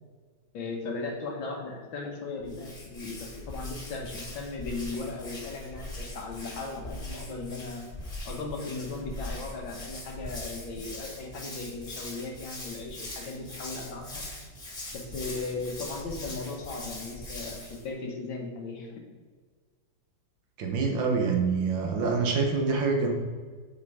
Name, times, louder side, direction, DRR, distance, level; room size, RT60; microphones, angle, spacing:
voice 1, 0.5-7.9 8.3-14.3 14.9-19.0, left 3 dB, 80° left, 1 dB, 2.1 m, -37 dB
Hands, 2.4-17.8, left 1 dB, 20° left, 1.5 m, -41 dB
voice 2, 20.6-23.1, right 4 dB, 75° right, 3 dB, 1.9 m, -26 dB
8.1 x 4.7 x 4.9 m, 1.5 s
omnidirectional pair, 2.1 m